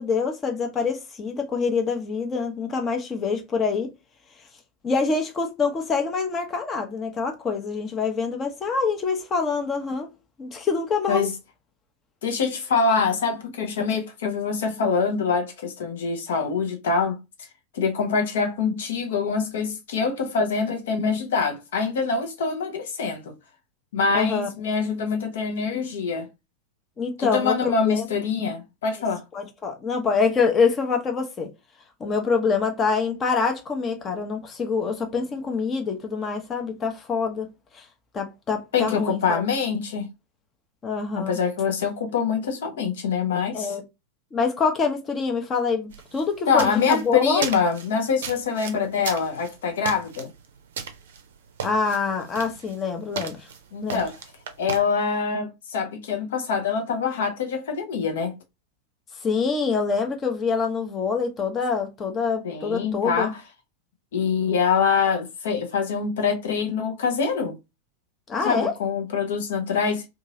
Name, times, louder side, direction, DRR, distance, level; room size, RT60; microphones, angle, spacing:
voice 1, 0.0-3.9 4.8-10.1 10.4-11.3 24.1-24.5 27.0-28.1 29.3-31.5 32.0-37.5 37.7-37.9 38.1-39.4 40.8-41.4 43.5-43.8 44.3-47.5 51.6-53.5 53.8-54.0 59.2-63.3 68.3-68.7, left 5 dB, 25° left, 0.8 m, -25 dB
voice 2, 12.2-17.2 17.7-23.3 23.9-26.3 27.2-29.2 38.7-40.1 41.2-43.8 46.5-50.3 53.7-54.2 54.6-58.3 62.4-63.4 64.1-67.6 68.4-70.0, left 5 dB, 60° left, 0.8 m, -25 dB
sound 1, 45.9-54.8, right 7 dB, 60° right, 0.5 m, -37 dB
2.8 x 2.4 x 2.7 m
figure-of-eight pair, 90°, 0 cm